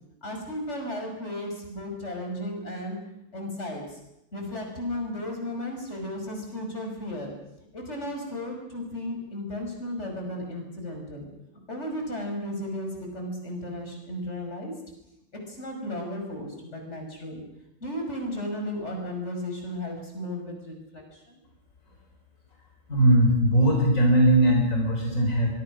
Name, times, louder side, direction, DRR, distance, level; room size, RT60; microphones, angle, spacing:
voice 1, 0.2-3.0 3.3-4.0 4.3-7.3 7.7-11.3 11.7-14.7 15.3-17.4 17.8-21.4, left 1 dB, 60° left, 2 dB, 6.2 m, -34 dB
voice 2, 22.9-25.5, right 1 dB, 85° left, 1 dB, 4.5 m, -20 dB
24.5 x 22.5 x 6.3 m, 0.82 s
omnidirectional pair, 1.3 m